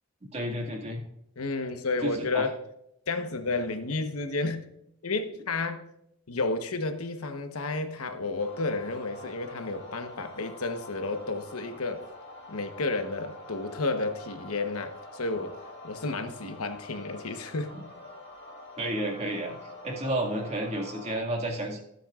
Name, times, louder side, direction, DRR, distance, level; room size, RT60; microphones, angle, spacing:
voice 1, 0.3-1.0 2.0-2.5 18.8-19.6 19.8-21.8, right 1 dB, 30° right, 2.0 m, -31 dB
voice 2, 1.4-2.5 3.1-4.6 5.0-5.9 6.3-12.0 12.5-15.5 15.8-17.8, left 3 dB, 85° left, 1.1 m, -31 dB
sound 1, 8.4-21.2, left 2 dB, 55° left, 1.9 m, -46 dB
18.5 x 7.8 x 2.4 m
head